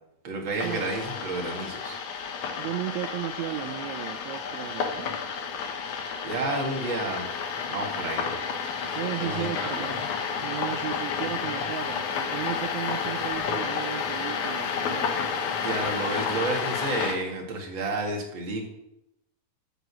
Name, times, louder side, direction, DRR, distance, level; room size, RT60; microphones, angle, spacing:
voice 1, 0.2-2.0 6.2-7.3 7.7-8.3 9.2-9.8 15.6-18.7, right 2 dB, 40° right, 1 dB, 2.2 m, -31 dB
sound 1, 0.6-17.1, left 6 dB, 65° left, 2.5 m, -31 dB
voice 2, 2.6-5.1 9.0-10.1 10.4-15.1, right 12 dB, 85° right, 7 dB, 1.6 m, -35 dB
13.0 x 5.3 x 6.2 m, 0.85 s
omnidirectional pair, 3.9 m